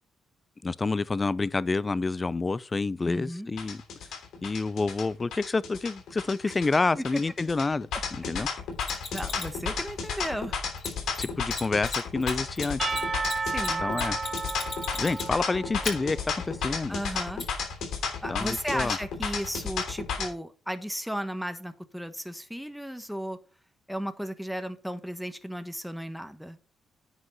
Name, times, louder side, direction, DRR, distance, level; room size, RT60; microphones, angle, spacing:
voice 1, 0.6-3.8 4.4-8.5 11.2-12.8 13.8-14.2 15.0-16.2 16.4-17.0 18.3-19.0, left 3 dB, 30° left, 0.5 m, -28 dB
voice 2, 3.0-3.5 6.9-7.0 8.8-10.6 13.4-13.8 16.9-17.5 18.2-23.4 23.9-26.6, equal, ahead, 1.2 m, -35 dB
sound 1, 3.6-20.3, left 6 dB, 75° left, 3.1 m, -32 dB
Mechanisms, 8.8-9.6 10.8-10.9 11.1-11.2 11.5-11.6 11.9-15.4 15.8-15.9 17.4-17.5, left 5 dB, 50° left, 5.0 m, -35 dB
Percussion / Church bell, 12.8-16.4, right 4 dB, 35° right, 0.4 m, -33 dB
9.7 x 5.2 x 5.5 m
supercardioid pair, 65°, 0 cm